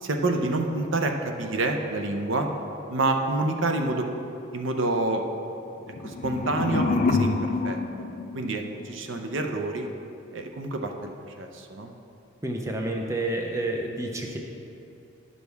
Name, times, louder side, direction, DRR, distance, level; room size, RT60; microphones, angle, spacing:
voice 1, 0.0-2.5 2.9-4.1 4.5-5.2 6.0-7.4 7.6-8.1 8.3-9.9 10.3-11.1 11.4-11.9, right 2 dB, 70° right, 4 dB, 0.7 m, -27 dB
sound 1, 5.8-8.9, left 3 dB, 40° left, 0.4 m, -27 dB
voice 2, 12.4-14.4, right 2 dB, 15° right, 1 dB, 0.6 m, -29 dB
10.5 x 6.3 x 3.5 m, 2.7 s
head